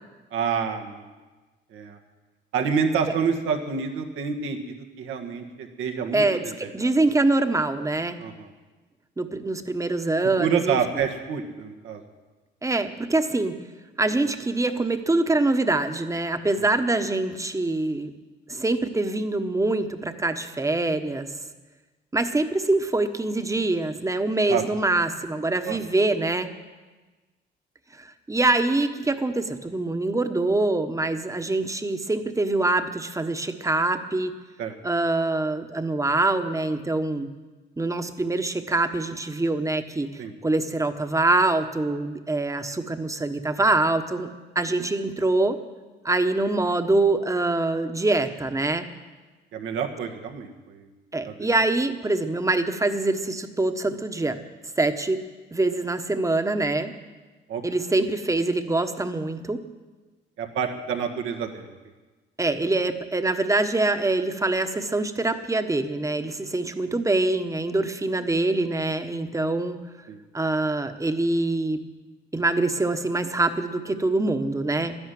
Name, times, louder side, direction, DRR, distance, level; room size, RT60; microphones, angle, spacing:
voice 1, 0.3-1.1 1.7-2.0 2.5-6.9 8.2-8.5 10.4-12.0 24.5-24.6 25.6-25.8 34.6-34.7 40.2-40.3 49.5-50.9 51.2-51.5 57.5-57.6 60.4-61.8 70.1-70.2, right 6 dB, 85° right, 4 dB, 1.7 m, -28 dB
voice 2, 6.1-6.4 6.7-8.2 9.2-10.8 12.6-13.6 14.0-18.1 18.5-21.3 22.1-26.5 28.0-34.3 34.8-37.3 37.8-44.3 44.5-45.6 46.0-48.9 51.1-54.4 54.8-55.2 55.5-56.9 57.6-59.6 62.4-69.8 70.3-71.8 72.3-75.0, right 2 dB, 15° right, 8 dB, 1.2 m, -24 dB
12.5 x 11.0 x 9.4 m, 1.3 s
cardioid pair, 90°, 20 cm